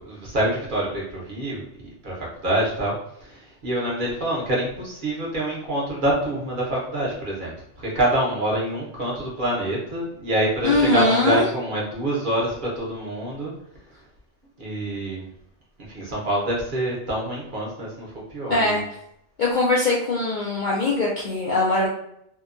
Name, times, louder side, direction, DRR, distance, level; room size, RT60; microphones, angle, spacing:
voice 1, 0.0-1.6 2.0-2.1 2.4-2.9 3.6-7.5 7.8-13.5 14.6-15.3 15.9-18.1 18.3-18.8, right 1 dB, 50° right, -4 dB, 0.9 m, -25 dB
voice 2, 10.6-11.4 18.5-18.8 19.4-21.9, left 2 dB, 60° left, -5 dB, 0.5 m, -21 dB
2.7 x 2.2 x 2.4 m, 0.75 s
omnidirectional pair, 1.2 m